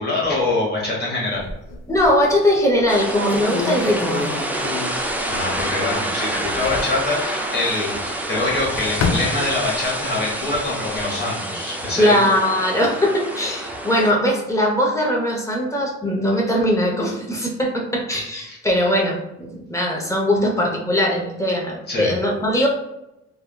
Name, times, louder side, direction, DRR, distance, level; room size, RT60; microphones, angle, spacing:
voice 1, 0.0-1.5 5.3-12.2 18.5-18.6 21.9-22.1, left 2 dB, 35° left, -4 dB, 1.2 m, -24 dB
sound 1, 1.3-2.3 2.8-2.9 3.3-5.9 6.2-7.0 8.2-9.9 10.4-11.0, left 4 dB, 60° left, 0.5 m, -29 dB
voice 2, 1.9-4.3 12.0-22.7, equal, 10° left, -1 dB, 0.8 m, -20 dB
sound 2, 2.9-14.1, right 1 dB, 5° right, 0.3 m, -27 dB
3.4 x 2.3 x 2.2 m, 0.89 s
cardioid pair, 90°, 30 cm